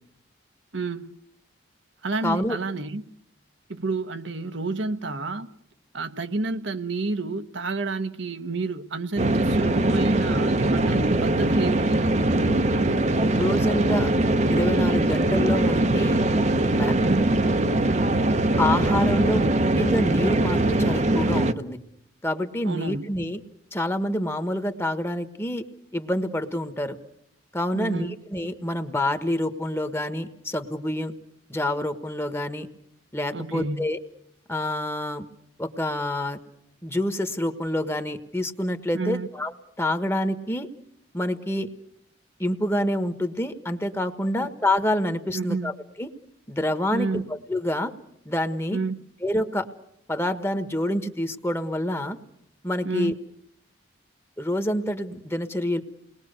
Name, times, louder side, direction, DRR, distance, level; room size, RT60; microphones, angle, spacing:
voice 1, 0.7-1.2 2.0-3.0 3.7-5.5 5.9-12.1 17.0-17.4 22.6-23.0 27.7-28.2 33.3-33.9 38.9-39.3 44.4-44.5 45.3-45.7 46.9-47.3 48.7-49.0 52.8-53.2, right 3 dB, 65° right, 1.1 m, -29 dB
voice 2, 2.2-2.6 13.4-14.1 14.5-16.2 16.8-16.9 18.6-21.8 22.2-23.4 23.7-25.6 25.9-27.0 27.5-31.1 31.5-32.7 33.1-34.0 34.5-35.3 35.6-36.4 36.8-39.5 39.8-40.7 41.1-41.7 42.4-45.7 46.0-46.1 46.5-47.9 48.2-48.8 49.2-49.7 50.1-52.2 52.6-53.1 54.4-55.8, left 1 dB, 10° left, 1.3 m, -27 dB
sound 1, 9.2-21.5, right 1 dB, 35° right, 0.9 m, -22 dB
29.5 x 21.0 x 6.7 m
head